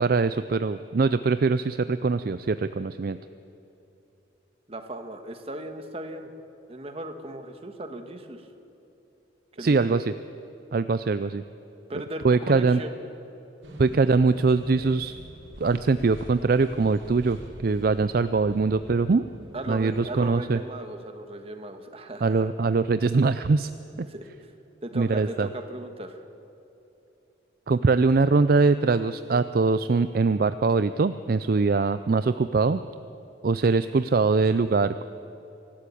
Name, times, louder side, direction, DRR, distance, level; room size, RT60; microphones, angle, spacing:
voice 1, 0.0-3.2 9.6-10.1 10.7-11.4 12.2-12.8 13.8-15.2 15.6-19.3 19.7-20.6 22.2-23.7 24.9-25.5 27.7-32.8 33.4-35.0, right 4 dB, 50° right, 12 dB, 0.4 m, -22 dB
voice 2, 4.7-6.3 6.7-8.4 9.5-10.0 11.9-12.9 19.5-22.5 24.0-24.5 24.8-26.2, right 1 dB, 30° right, 7 dB, 1.5 m, -37 dB
sound 1, 13.6-20.4, equal, 85° right, 4.2 m, -45 dB
24.0 x 13.0 x 8.5 m, 2.8 s
head